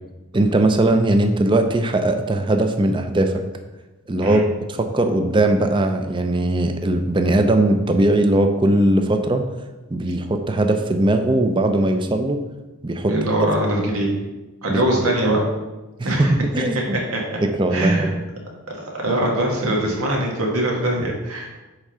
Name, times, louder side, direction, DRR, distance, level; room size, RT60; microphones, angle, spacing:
voice 1, 0.3-3.4 4.1-9.5 9.9-12.4 12.8-13.1 14.7-14.8 16.0-17.0 17.4-18.1, right 1 dB, 20° right, 6 dB, 0.5 m, -19 dB
voice 2, 13.1-14.1 14.6-15.4 16.0-16.3 17.1-17.2 17.7-18.1 18.8-21.5, right 1 dB, 85° right, -1 dB, 1.6 m, -22 dB
8.2 x 3.7 x 5.5 m, 1.1 s
head